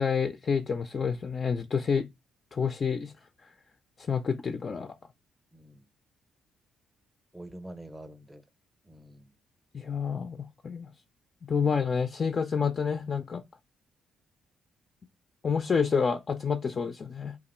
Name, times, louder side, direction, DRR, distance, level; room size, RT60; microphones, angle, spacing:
voice 1, 0.0-2.1 2.5-3.1 4.0-4.9 9.7-10.4 10.6-10.9 11.4-13.4 15.4-17.4, left 6 dB, 40° left, 0.3 m, -28 dB
voice 2, 5.5-5.8 7.3-8.4 8.9-9.3, right 1 dB, 10° right, 0.6 m, -46 dB
2.9 x 2.4 x 4.2 m
cardioid pair, 90°, 0 cm